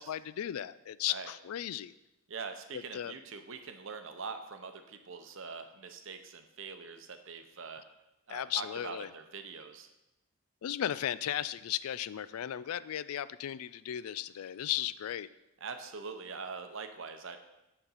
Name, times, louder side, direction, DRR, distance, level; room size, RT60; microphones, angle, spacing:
voice 1, 0.0-1.9 2.7-3.2 8.3-9.1 10.6-15.3, left 11 dB, 85° left, 16 dB, 0.3 m, -36 dB
voice 2, 2.3-7.9 8.3-9.9 15.6-17.4, right 5 dB, 60° right, 7 dB, 0.7 m, -43 dB
9.3 x 4.2 x 5.7 m, 0.93 s
head